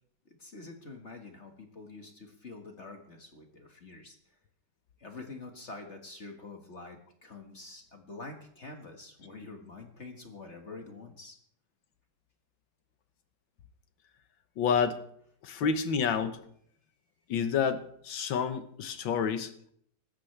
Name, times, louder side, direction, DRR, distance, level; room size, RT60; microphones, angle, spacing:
voice 1, 0.4-4.2 5.0-11.4 15.5-15.6 18.9-19.1, left 3 dB, 40° left, 4 dB, 1.9 m, -46 dB
voice 2, 14.6-15.0 15.4-16.4 17.3-19.5, left 6 dB, 85° left, 9 dB, 1.8 m, -29 dB
25.0 x 13.0 x 3.3 m, 0.64 s
omnidirectional pair, 2.0 m